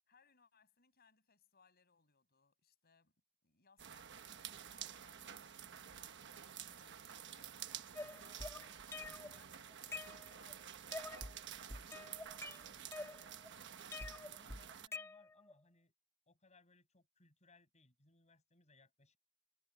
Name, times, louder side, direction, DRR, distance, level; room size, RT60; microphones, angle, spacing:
voice 1, 0.1-3.1 3.4-12.4, left 5 dB, 50° left, 7.5 m, -71 dB
sound 1, 3.8-14.9, right 9 dB, 60° right, 1.2 m, -51 dB
sound 2, 7.9-9.4 9.7-10.5 10.9-11.4 11.7-13.5 13.9-15.5, left 2 dB, 15° left, 2.2 m, -47 dB
voice 2, 14.0-15.9 16.3-19.2, left 3 dB, 35° left, 7.2 m, -69 dB
head